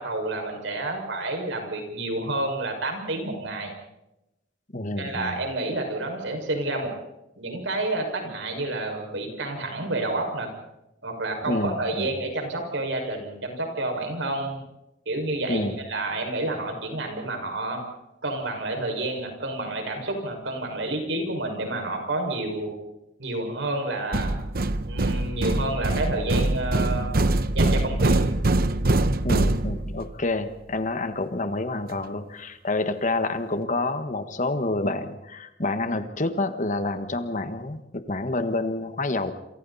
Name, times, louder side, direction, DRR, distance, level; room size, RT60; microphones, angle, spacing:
voice 1, 0.0-3.7 5.0-6.9 7.4-10.5 11.0-14.6 15.1-17.8 18.2-22.7 23.2-24.4 24.8-27.1 27.5-28.2, right 2 dB, 90° right, 3 dB, 6.0 m, -29 dB
voice 2, 4.7-5.4 11.5-12.1 15.5-15.8 29.2-39.3, left 2 dB, 45° left, 9 dB, 1.6 m, -28 dB
sound 1, 24.1-30.1, right 2 dB, 55° right, 1.0 m, -23 dB
28.0 x 27.0 x 4.3 m, 0.92 s
head